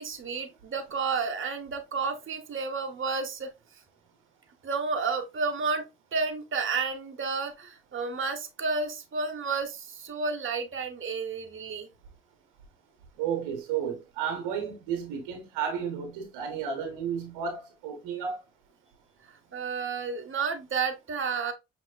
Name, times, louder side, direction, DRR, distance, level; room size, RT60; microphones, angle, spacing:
voice 1, 0.0-3.5 4.6-5.8 6.1-11.9 19.5-21.5, right 4 dB, 40° right, 1.0 m, -31 dB
voice 2, 13.2-18.4, right 7 dB, 90° right, 1.1 m, -32 dB
5.6 x 2.9 x 2.2 m
hypercardioid pair, 45°, 31 cm